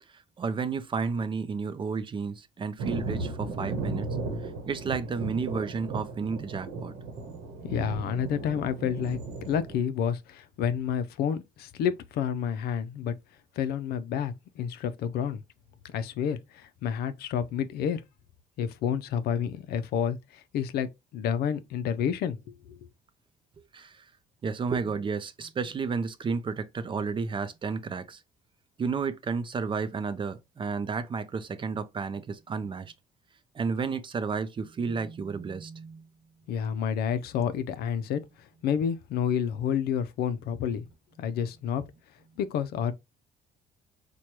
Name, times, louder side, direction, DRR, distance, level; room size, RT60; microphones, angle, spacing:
voice 1, 0.4-4.0 4.7-6.9 24.4-28.2 28.8-32.8 33.6-36.0, right 5 dB, 30° right, 0.5 m, -31 dB
Thunder, 2.8-9.8, right 3 dB, 80° right, 1.0 m, -35 dB
voice 2, 7.6-9.2 9.5-13.1 13.6-15.4 15.9-18.0 18.6-20.2 20.5-22.4 22.7-22.8 36.5-38.2 38.6-40.8 41.2-41.8 42.4-42.9, left 8 dB, 70° left, 0.5 m, -29 dB
4.4 x 2.2 x 2.9 m
cardioid pair, 110°, 17 cm